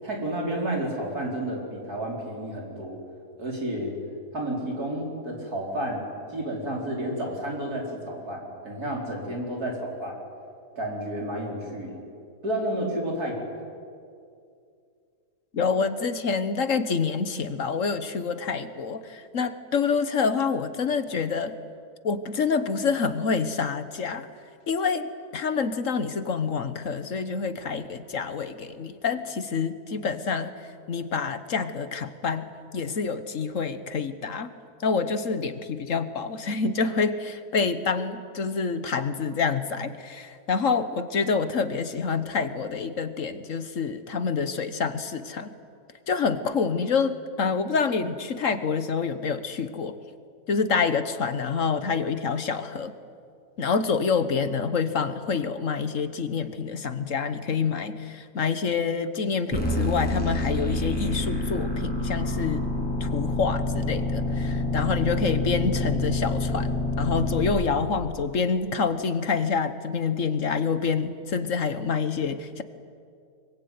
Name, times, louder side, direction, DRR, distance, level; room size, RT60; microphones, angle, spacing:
voice 1, 0.0-3.0 3.4-4.0 4.3-6.0 6.3-10.2 10.8-12.0 12.4-13.5, right 1 dB, 70° right, -1 dB, 5.5 m, -31 dB
voice 2, 15.5-21.6 22.0-24.3 24.7-25.1 25.3-30.5 30.9-34.5 34.8-45.5 46.1-50.0 50.5-52.9 53.6-62.7 63.0-72.6, left 5 dB, 55° left, 11 dB, 1.5 m, -27 dB
sound 1, 59.5-67.5, left 2 dB, 5° left, 7.0 m, -27 dB
24.5 x 23.0 x 9.5 m, 2.4 s
omnidirectional pair, 1.7 m